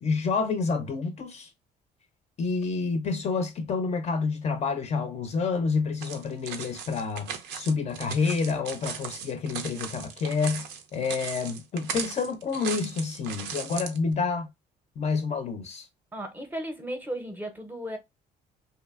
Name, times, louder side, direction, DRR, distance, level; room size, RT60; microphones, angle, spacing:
voice 1, 0.0-1.5 2.4-14.5 15.0-15.9, left 4 dB, 40° left, 0.4 m, -28 dB
sound 1, 6.0-14.0, right 7 dB, 85° right, 0.5 m, -37 dB
voice 2, 16.1-18.0, right 1 dB, 10° right, 0.6 m, -35 dB
2.6 x 2.5 x 2.4 m
cardioid pair, 110°, 17 cm